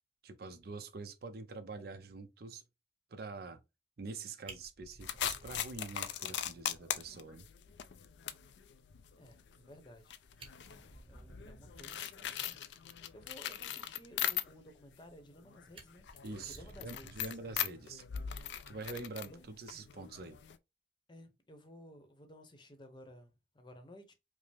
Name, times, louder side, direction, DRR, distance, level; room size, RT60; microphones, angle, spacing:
voice 1, 0.2-2.6 3.1-3.6 4.0-7.5 16.2-18.0 18.7-20.4, right 3 dB, 55° right, 0.5 m, -45 dB
Fire, 4.4-6.4 6.7-6.8 7.2-7.3 7.7-7.8 9.9-10.0 10.3-12.0 14.8-15.4 15.7-17.9 19.2-19.4, right 2 dB, 30° right, 1.1 m, -55 dB
sound 1, 5.0-14.8 15.2-20.6, left 10 dB, 75° left, 0.4 m, -41 dB
voice 2, 9.2-10.2 11.1-12.6 13.1-16.1 16.4-17.3 19.3-19.4 21.1-24.1, left 1 dB, 25° left, 0.8 m, -55 dB
5.2 x 2.0 x 3.3 m
head